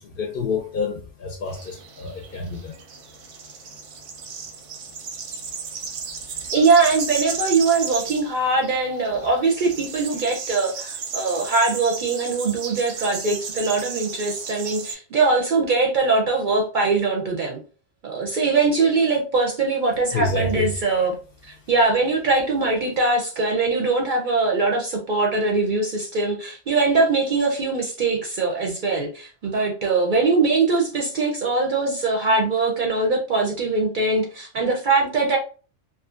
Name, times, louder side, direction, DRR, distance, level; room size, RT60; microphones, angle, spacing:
voice 1, 0.0-2.7 6.3-6.5 20.1-20.7, left 4 dB, 60° left, 0.6 m, -28 dB
sound 1, 1.5-14.9, right 5 dB, 85° right, 1.0 m, -34 dB
voice 2, 6.5-17.6 18.0-21.2 21.4-35.4, right 3 dB, 60° right, 0.5 m, -22 dB
2.6 x 2.3 x 2.4 m
omnidirectional pair, 1.2 m